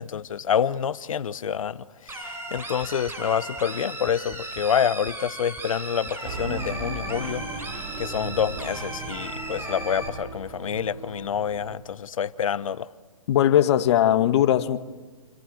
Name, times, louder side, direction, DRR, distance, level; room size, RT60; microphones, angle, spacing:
voice 1, 0.0-7.4 8.0-12.9, left 8 dB, 75° left, 1.0 m, -27 dB
sound 1, 2.1-10.1, right 2 dB, 15° right, 6.0 m, -36 dB
sound 2, 6.2-11.8, right 4 dB, 50° right, 6.9 m, -37 dB
voice 2, 13.3-14.8, left 11 dB, 50° left, 1.6 m, -19 dB
29.0 x 25.5 x 7.9 m
hypercardioid pair, 130°, 17 cm